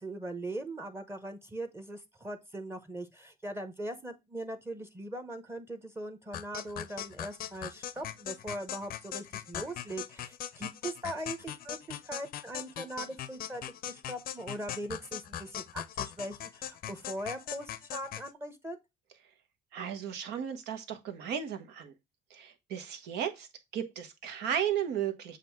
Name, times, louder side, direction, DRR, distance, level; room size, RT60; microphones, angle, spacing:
voice 1, 0.0-18.8, right 1 dB, 15° right, 0.9 m, -40 dB
sound 1, 6.3-18.3, left 11 dB, 60° left, 0.5 m, -40 dB
voice 2, 19.7-21.9 22.3-25.4, right 9 dB, 85° right, 1.2 m, -35 dB
7.6 x 2.6 x 5.8 m
cardioid pair, 110°, 17 cm